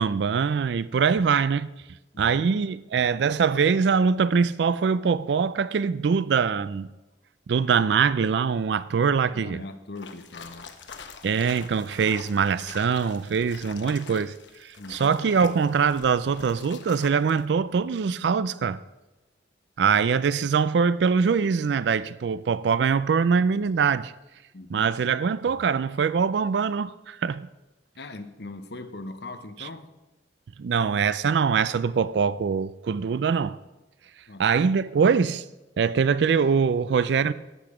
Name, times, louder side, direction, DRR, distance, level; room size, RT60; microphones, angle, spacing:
voice 1, 0.0-1.7 2.2-6.9 7.5-9.6 11.2-14.4 14.6-18.8 19.8-24.1 24.7-27.5 29.6-29.7 30.6-33.6 34.4-35.4 35.8-37.3, right 6 dB, 75° right, 0.4 m, -23 dB
voice 2, 2.1-2.5 9.3-10.7 14.8-15.2 24.5-24.9 28.0-29.9 34.3-34.4, left 2 dB, 65° left, 0.9 m, -40 dB
sound 1, 10.0-17.4, left 5 dB, 85° left, 1.0 m, -45 dB
12.5 x 8.5 x 4.9 m
head